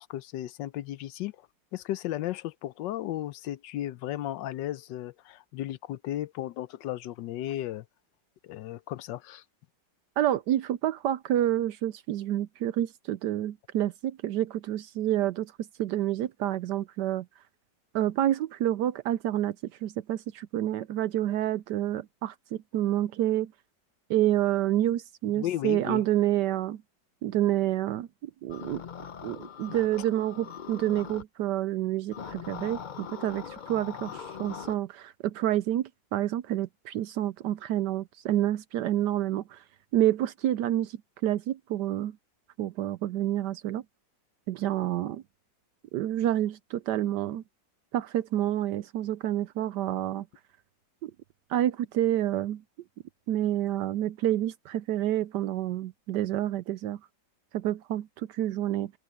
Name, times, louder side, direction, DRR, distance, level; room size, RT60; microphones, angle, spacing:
voice 1, 0.0-1.3 1.7-7.8 8.4-9.4 25.4-26.0, left 13 dB, 85° left, 1.3 m, -35 dB
voice 2, 10.2-17.2 17.9-19.6 19.8-23.5 24.1-26.8 27.2-28.1 28.4-28.8 29.2-39.6 39.9-41.0 41.2-42.2 42.6-43.8 44.5-45.2 45.9-47.4 47.9-50.2 51.0-51.1 51.5-52.6 53.3-57.0 57.5-58.9, right 12 dB, 75° right, 1.2 m, -28 dB
sound 1, 28.5-31.2 32.1-34.7, left 7 dB, 65° left, 0.4 m, -41 dB
omnidirectional pair, 1.9 m